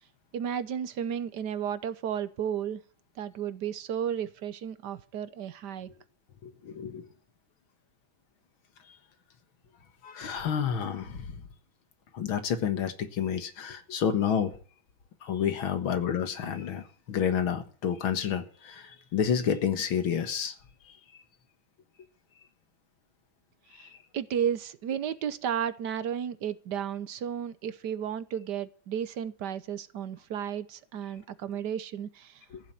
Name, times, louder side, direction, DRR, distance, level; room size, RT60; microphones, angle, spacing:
voice 1, 0.3-2.8 3.2-5.9 23.8-23.9 24.1-32.4, right 8 dB, 65° right, 1.4 m, -33 dB
voice 2, 6.4-7.1 10.0-11.3 12.1-14.5 15.2-20.5 23.7-23.9 32.5-32.6, left 8 dB, 90° left, 2.3 m, -29 dB
15.0 x 7.6 x 9.2 m
omnidirectional pair, 2.2 m